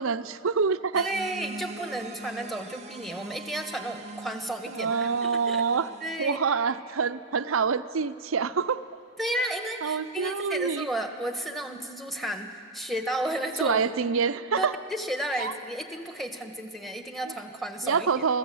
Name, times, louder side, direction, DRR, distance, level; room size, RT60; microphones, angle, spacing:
voice 1, 0.0-1.1 4.7-5.9 6.2-8.8 9.8-10.9 13.6-14.7 15.4-15.5 17.8-18.4, right 5 dB, 80° right, 13 dB, 0.6 m, -26 dB
voice 2, 0.9-5.6 6.0-6.4 9.2-13.8 14.6-18.2, right 1 dB, ahead, 5 dB, 1.4 m, -33 dB
sound 1, 0.9-6.3, right 3 dB, 35° right, 0.6 m, -43 dB
24.0 x 15.0 x 7.8 m, 2.3 s
head